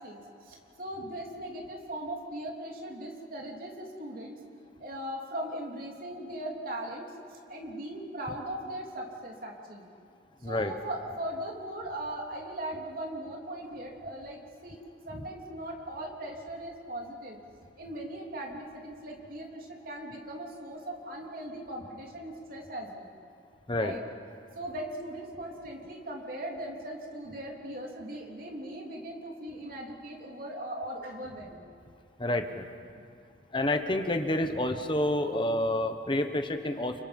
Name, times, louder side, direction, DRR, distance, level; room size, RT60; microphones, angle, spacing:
voice 1, 0.0-4.3 4.8-9.9 10.4-14.8 15.1-17.4 17.8-23.1 23.8-24.0 24.5-31.7, right 1 dB, 50° right, 0 dB, 3.4 m, -39 dB
voice 2, 10.4-10.7 15.1-15.2 23.7-23.9 32.2-32.7 33.5-37.0, left 1 dB, 25° left, 7 dB, 1.2 m, -29 dB
30.0 x 25.0 x 5.4 m, 2.4 s
head